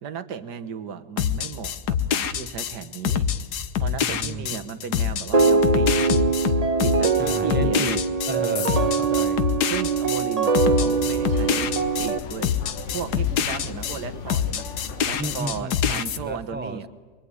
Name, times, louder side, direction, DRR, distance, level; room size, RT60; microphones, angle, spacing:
voice 1, 0.0-3.3 3.8-6.3 6.8-7.9 8.4-8.8 9.7-12.5 12.9-14.7 15.0-16.9, right 7 dB, 80° right, 10 dB, 1.8 m, -35 dB
sound 1, 1.2-14.0 14.3-16.2, left 8 dB, 80° left, 1.6 m, -25 dB
voice 2, 4.0-5.1 7.2-9.4 15.2-16.9, right 1 dB, 10° right, 11 dB, 0.5 m, -33 dB
sound 2, 5.3-12.2, right 5 dB, 30° right, 0.8 m, -22 dB
sound 3, 10.6-15.6, left 5 dB, 50° left, 1.4 m, -37 dB
24.5 x 22.5 x 9.7 m, 1.5 s
omnidirectional pair, 1.7 m